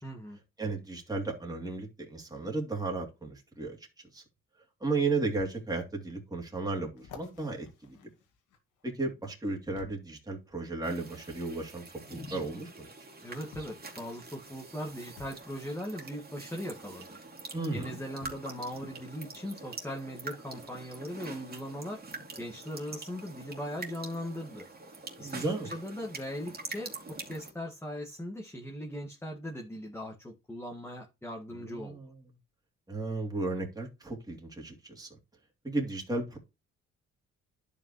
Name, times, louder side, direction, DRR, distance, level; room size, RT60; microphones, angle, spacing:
voice 1, 0.0-0.4 13.2-17.2 17.7-22.0 22.4-24.7 25.2-32.0, equal, 10° left, 1.8 m, -39 dB
voice 2, 0.6-3.8 4.1-4.2 4.8-8.0 8.8-12.9 17.5-18.0 25.2-25.7 31.6-32.2 32.9-35.1 35.6-36.4, right 3 dB, 10° right, 2.9 m, -34 dB
sound 1, 4.2-4.3 5.4-5.5 6.2-6.3 7.0-8.9 9.7-10.1 11.3-11.4 12.7-12.8 13.5-13.9 15.2-15.4 17.0-17.1 18.2-18.5 19.3-19.4, left 5 dB, 90° left, 2.0 m, -51 dB
sound 2, 10.8-27.5, right 3 dB, 30° right, 2.9 m, -45 dB
11.0 x 5.3 x 3.1 m
cardioid pair, 90°, 30 cm